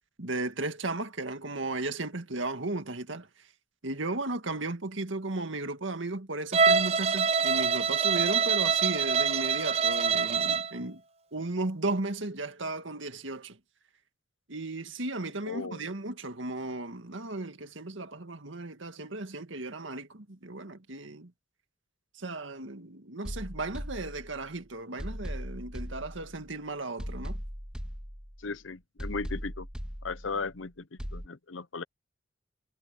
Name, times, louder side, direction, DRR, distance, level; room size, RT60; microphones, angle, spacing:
voice 1, 0.2-3.3 3.8-11.0 11.3-13.6 14.5-21.3 22.2-27.4, right 2 dB, 80° right, 1.9 m, -35 dB
Bowed string instrument, 6.5-10.7, right 5 dB, 30° right, 0.6 m, -25 dB
voice 2, 15.5-15.8 28.4-29.7 30.0-31.8, left 4 dB, 85° left, 0.9 m, -36 dB
sound 1, 23.2-24.5 25.0-26.5 27.0-28.5 29.0-30.5 31.0-31.3, equal, 5° right, 2.1 m, -39 dB
head